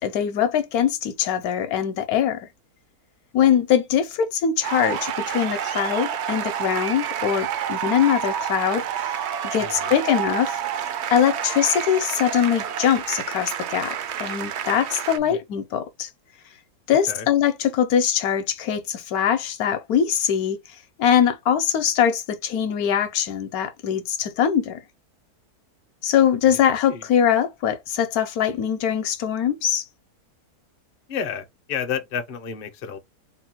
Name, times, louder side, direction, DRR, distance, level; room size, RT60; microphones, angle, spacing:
voice 1, 0.0-2.5 3.3-9.1 9.4-10.9 11.1-16.1 16.9-20.6 21.0-24.8 26.0-29.8, left 9 dB, 70° left, 1.1 m, -22 dB
sound 1, 4.6-15.2, right 9 dB, 75° right, 0.6 m, -29 dB
voice 2, 9.6-9.9 15.2-15.4 17.1-17.3 26.5-26.6 26.9-27.0 31.1-33.0, left 7 dB, 50° left, 0.7 m, -31 dB
3.7 x 2.2 x 4.3 m
omnidirectional pair, 1.7 m